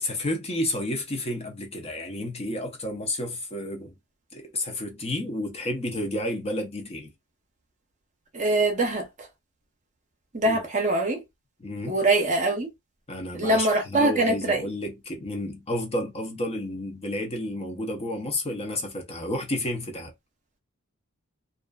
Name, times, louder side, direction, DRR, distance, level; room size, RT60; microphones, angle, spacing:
voice 1, 0.0-4.0 4.3-7.1 10.4-10.6 11.6-12.0 13.1-20.1, left 1 dB, 30° left, 0.6 m, -31 dB
voice 2, 8.3-9.3 10.3-11.2 11.9-12.7 13.3-14.7, right 2 dB, 35° right, 0.7 m, -23 dB
2.4 x 2.4 x 2.3 m
head